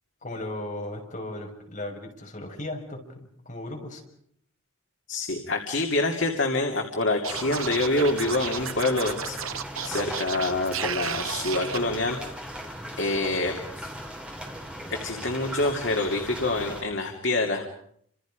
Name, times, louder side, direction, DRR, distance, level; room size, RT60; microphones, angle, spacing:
voice 1, 0.2-4.0, left 1 dB, 40° left, 1 dB, 5.9 m, -36 dB
voice 2, 5.1-9.4 9.8-12.2 13.0-13.8 14.9-17.7, left 2 dB, 60° left, 2 dB, 2.6 m, -26 dB
Scratching (performance technique), 7.2-11.8, right 8 dB, 90° right, 1.3 m, -33 dB
sound 1, 7.3-16.8, equal, 5° right, 3.9 m, -38 dB
30.0 x 27.0 x 5.2 m, 0.68 s
head